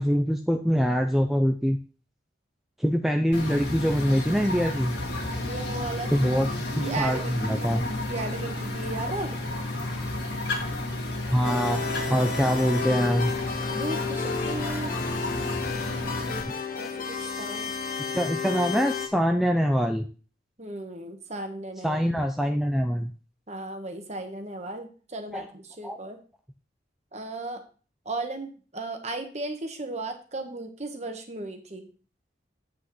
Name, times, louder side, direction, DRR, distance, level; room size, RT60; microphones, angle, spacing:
voice 1, 0.0-1.8 2.8-4.9 6.1-6.5 6.8-7.8 11.3-11.8 12.1-13.3 18.0-20.0 21.8-23.1 25.3-25.4 25.8-26.0, equal, ahead, 3 dB, 0.4 m, -24 dB
sound 1, 3.3-16.4, left 1 dB, 65° left, 2.0 m, -32 dB
voice 2, 5.4-6.4 6.8-9.3 13.7-14.9 16.7-17.7 20.6-22.0 23.5-26.2 27.1-27.6 28.0-31.9, right 2 dB, 35° right, 5 dB, 1.2 m, -36 dB
sound 2, 11.4-19.1, left 5 dB, 45° left, 0.9 m, -32 dB
8.4 x 8.2 x 3.1 m, 0.37 s
head